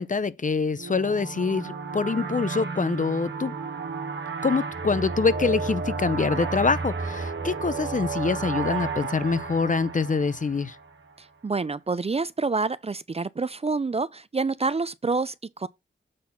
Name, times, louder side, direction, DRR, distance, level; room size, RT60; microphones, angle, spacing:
voice 1, 0.0-3.5 4.4-10.8, left 4 dB, 40° left, 0.7 m, -25 dB
sound 1, 0.8-11.1, right 4 dB, 65° right, 1.4 m, -32 dB
voice 2, 11.2-15.7, right 4 dB, 30° right, 0.4 m, -28 dB
7.5 x 4.1 x 5.7 m
cardioid pair, 65°, 20 cm